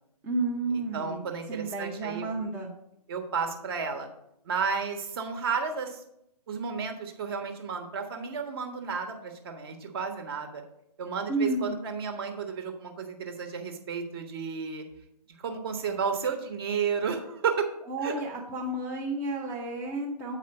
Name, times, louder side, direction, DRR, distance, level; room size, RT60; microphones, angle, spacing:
voice 1, 0.2-2.7 11.3-11.8 17.9-20.4, right 2 dB, 10° right, -3 dB, 0.6 m, -31 dB
voice 2, 0.9-2.3 3.1-4.1 4.4-6.0 6.5-10.6 11.0-14.8 15.4-17.7 18.0-18.1, right 6 dB, 35° right, 5 dB, 1.3 m, -32 dB
8.0 x 5.0 x 5.3 m, 0.78 s
figure-of-eight pair, 135°, 20 cm